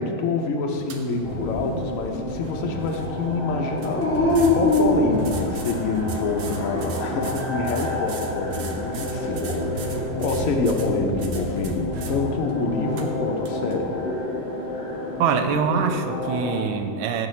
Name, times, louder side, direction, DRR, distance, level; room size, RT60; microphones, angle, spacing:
voice 1, 0.0-14.0, left 3 dB, 75° left, 3 dB, 0.7 m, -27 dB
sound 1, 0.7-15.5, right 3 dB, 70° right, 1.3 m, -37 dB
sound 2, 1.2-16.6, left 2 dB, 45° left, 2.4 m, -30 dB
Dog, 3.9-5.9 6.5-7.3 9.6-10.4, left 2 dB, 20° left, 0.4 m, -23 dB
voice 2, 15.2-17.3, right 6 dB, 85° right, 7 dB, 1.4 m, -24 dB
14.0 x 4.7 x 3.2 m, 2.3 s
omnidirectional pair, 2.2 m